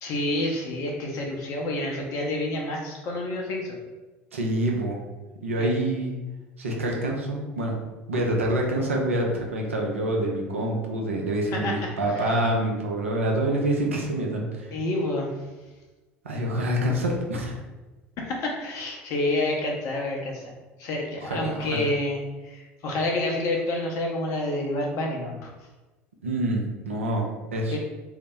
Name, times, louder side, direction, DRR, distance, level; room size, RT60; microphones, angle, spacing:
voice 1, 0.0-3.8 5.6-5.7 11.5-11.7 12.1-12.3 14.7-15.3 18.2-20.4 20.8-22.2 22.4-25.5 27.7-27.8, left 2 dB, 55° left, 0 dB, 0.8 m, -28 dB
voice 2, 4.3-5.0 5.4-6.1 6.6-7.7 8.1-14.7 16.2-17.6 21.2-21.9 26.2-27.8, right 1 dB, 85° right, 0 dB, 0.5 m, -26 dB
2.7 x 2.0 x 3.5 m, 1.2 s
hypercardioid pair, 70°, 7 cm